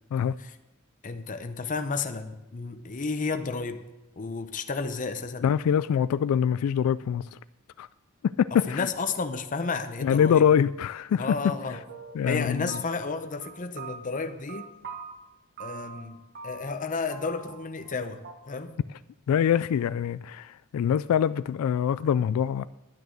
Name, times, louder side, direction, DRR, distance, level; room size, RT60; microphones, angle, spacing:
voice 1, 1.0-3.8 4.2-5.5 8.7-10.4 11.2-11.8 12.3-14.7 15.6-18.7, left 4 dB, 40° left, 0.7 m, -32 dB
voice 2, 5.4-7.2 7.8-7.9 8.2-8.9 10.0-11.3 12.2-12.7 19.3-22.6, left 8 dB, 85° left, 0.3 m, -24 dB
sound 1, 11.7-12.4 12.7-13.1 13.4-15.1 15.6-16.1 16.3-16.8 17.1-17.9 18.2-18.4, right 5 dB, 50° right, 1.4 m, -42 dB
10.5 x 9.3 x 6.2 m
head